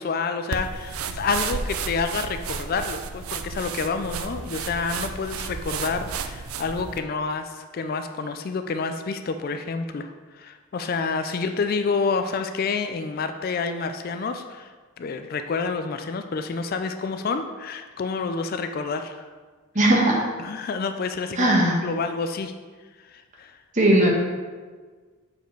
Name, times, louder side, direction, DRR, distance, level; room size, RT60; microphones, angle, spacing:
voice 1, 0.0-19.3 20.4-22.5 23.0-23.6, left 4 dB, 45° left, 8 dB, 0.3 m, -28 dB
sound 1, 0.5-7.0, right 5 dB, 80° right, 0.5 m, -32 dB
voice 2, 19.7-20.3 21.4-21.8 23.7-24.1, right 1 dB, 35° right, -1 dB, 1.2 m, -18 dB
7.0 x 4.9 x 4.5 m, 1.5 s
head